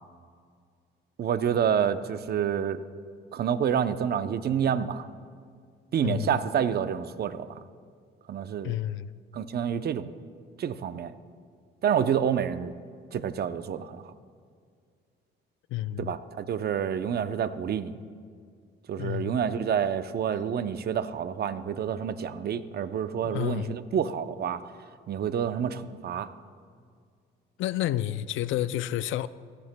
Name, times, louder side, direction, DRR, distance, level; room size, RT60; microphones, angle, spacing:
voice 1, 1.2-2.8 3.3-5.1 5.9-7.6 8.3-8.7 9.3-10.1 10.6-11.1 11.8-12.7 13.1-14.1 16.0-18.0 18.9-24.6 25.1-26.3, right 8 dB, 55° right, 0.6 m, -28 dB
voice 2, 6.0-6.4 8.6-9.1 15.7-16.1 19.0-19.3 23.2-23.8 27.6-29.3, left 13 dB, 80° left, 0.4 m, -30 dB
17.5 x 15.5 x 2.2 m
cardioid pair, 90°, 20 cm